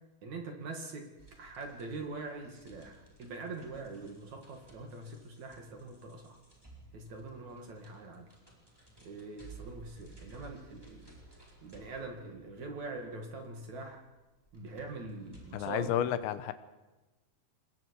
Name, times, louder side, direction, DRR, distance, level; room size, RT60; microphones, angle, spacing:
voice 1, 0.2-1.1 1.4-6.4 6.9-8.3 9.0-11.2 11.6-14.0 14.5-15.9, right 3 dB, 50° right, 3 dB, 2.7 m, -43 dB
sound 1, 1.2-15.6, right 3 dB, 5° right, 4.1 m, -57 dB
voice 2, 15.5-16.5, left 10 dB, 80° left, 12 dB, 3.1 m, -31 dB
27.5 x 21.0 x 4.8 m, 1.1 s
omnidirectional pair, 5.4 m